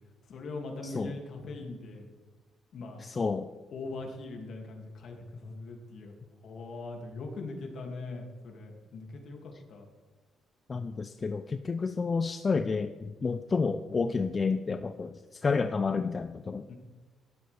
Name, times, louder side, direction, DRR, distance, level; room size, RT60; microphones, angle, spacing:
voice 1, 0.3-2.1 2.7-3.1 3.7-6.1 6.4-9.9 16.7-16.8, left 3 dB, 65° left, 1 dB, 2.4 m, -41 dB
voice 2, 0.8-1.1 3.0-3.5 10.7-16.7, left 4 dB, 35° left, 10 dB, 0.5 m, -30 dB
14.5 x 11.5 x 3.4 m, 1.3 s
cardioid pair, 90°, 0 cm